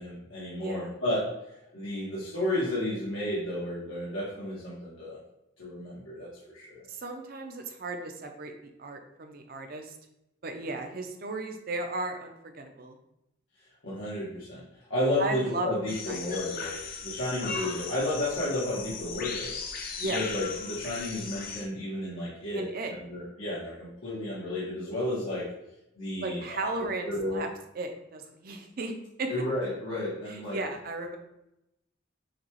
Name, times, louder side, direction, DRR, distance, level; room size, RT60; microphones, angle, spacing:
voice 1, 0.0-1.3 1.7-5.2 5.6-6.8 13.8-19.6 20.1-25.5 26.0-26.7 27.0-27.5 29.3-30.6, left 1 dB, 85° left, -8 dB, 1.3 m, -32 dB
voice 2, 0.6-0.9 6.9-9.9 10.4-13.0 15.2-15.7 16.1-16.2 20.0-20.2 22.5-22.9 26.2-27.5 27.8-28.9 29.2-29.3 30.5-31.2, right 2 dB, 50° right, 4 dB, 0.6 m, -35 dB
sound 1, 15.9-21.6, left 5 dB, 50° left, 0.5 m, -37 dB
6.5 x 2.3 x 3.0 m, 0.86 s
head